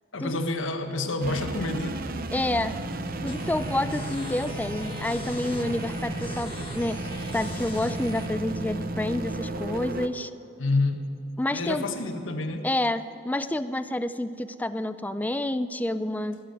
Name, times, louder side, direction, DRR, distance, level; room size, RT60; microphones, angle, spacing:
voice 1, 0.1-2.0 10.6-11.0 11.5-12.7, left 2 dB, 90° left, 6 dB, 1.3 m, -28 dB
sound 1, 1.2-10.1, right 2 dB, 50° right, 0.7 m, -33 dB
voice 2, 2.3-2.8 3.2-7.0 7.3-10.3 11.4-11.9 12.6-16.4, left 1 dB, 10° left, 12 dB, 0.4 m, -29 dB
sound 2, 3.3-8.3, left 2 dB, 30° left, 1.4 m, -42 dB
17.0 x 7.0 x 9.6 m, 2.8 s
head